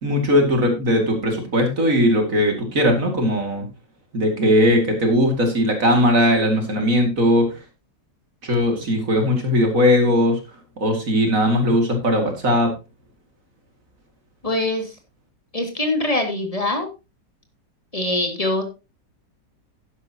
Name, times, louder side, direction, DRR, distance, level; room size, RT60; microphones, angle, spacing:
voice 1, 0.0-3.6 4.1-7.6 8.4-10.4 10.8-12.7, equal, 50° right, 4 dB, 2.8 m, -19 dB
voice 2, 14.4-15.0 15.5-16.9 17.9-18.6, left 1 dB, 20° left, 4 dB, 2.3 m, -23 dB
12.0 x 10.5 x 2.9 m, 0.28 s
omnidirectional pair, 1.9 m